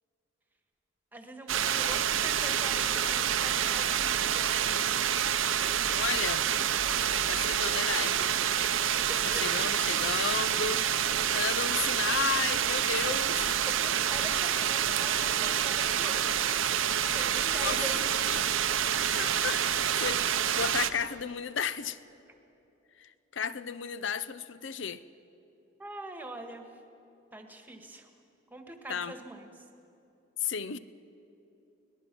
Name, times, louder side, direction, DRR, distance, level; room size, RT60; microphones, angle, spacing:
voice 1, 1.1-4.6 8.7-9.4 13.7-16.6 17.1-18.0 23.9-24.1 25.8-26.7 27.3-28.1 28.5-29.5, right 1 dB, 10° right, 1.4 m, -43 dB
sound 1, 1.5-20.9, right 9 dB, 80° right, 0.8 m, -28 dB
voice 2, 5.9-6.5 7.3-8.4 9.2-10.9 11.3-13.5 17.5-17.8 18.3-18.5 19.1-20.3 20.6-22.0 23.0-25.0 28.9-29.2 30.4-30.8, left 7 dB, 70° left, 0.6 m, -33 dB
23.5 x 19.0 x 6.1 m
head